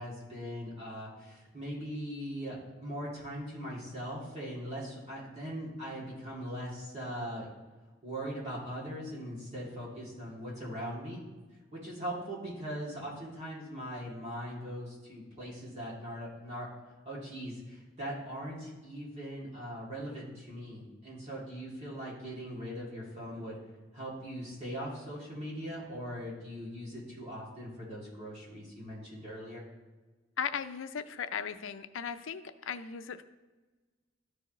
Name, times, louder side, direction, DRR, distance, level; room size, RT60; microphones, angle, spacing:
voice 1, 0.0-7.5 8.0-11.2 11.7-16.7 17.0-23.6 23.9-29.6, equal, 35° right, -7 dB, 2.6 m, -40 dB
voice 2, 30.4-33.2, left 7 dB, 80° left, 11 dB, 0.5 m, -37 dB
13.0 x 4.8 x 3.1 m, 1.2 s
head